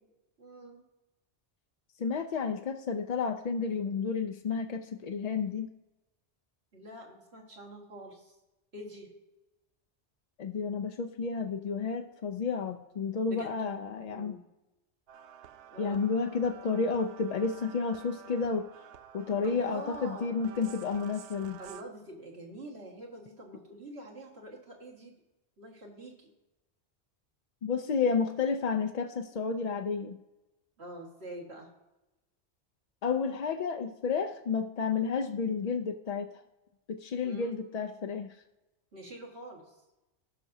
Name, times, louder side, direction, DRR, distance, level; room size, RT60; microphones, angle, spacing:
voice 1, 0.4-0.8 6.7-8.4 8.7-9.1 13.3-13.7 14.1-14.4 15.7-16.0 19.4-20.3 21.6-25.1 25.6-26.3 30.8-31.7 37.2-37.6 38.9-39.8, right 1 dB, 65° right, -2 dB, 2.0 m, -45 dB
voice 2, 2.0-5.7 10.4-14.4 15.8-18.7 19.1-21.6 27.6-30.2 33.0-36.4 36.9-38.4, left 5 dB, 55° left, 6 dB, 0.4 m, -31 dB
sound 1, 15.1-21.8, right 10 dB, 85° right, 0.9 m, -50 dB
17.0 x 5.9 x 2.7 m, 1.0 s
omnidirectional pair, 1.2 m